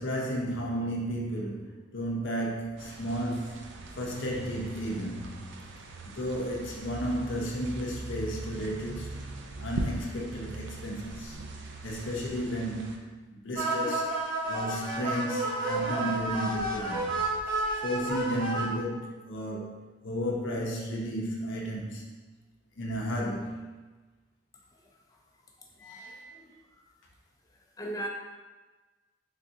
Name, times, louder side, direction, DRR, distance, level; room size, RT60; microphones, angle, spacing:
voice 1, 0.0-5.5 6.1-9.2 9.6-11.4 11.8-14.2 14.4-17.1 17.8-22.0 22.8-23.6 25.8-26.3, equal, 65° left, -2 dB, 0.6 m, -33 dB
sound 1, 2.8-13.0, right 2 dB, 65° right, 0.4 m, -40 dB
sound 2, 13.6-18.6, right 2 dB, 50° right, 1.2 m, -31 dB
voice 2, 25.8-26.5 27.8-28.1, right 1 dB, 20° left, -1 dB, 0.5 m, -38 dB
3.7 x 3.4 x 2.7 m, 1.3 s
head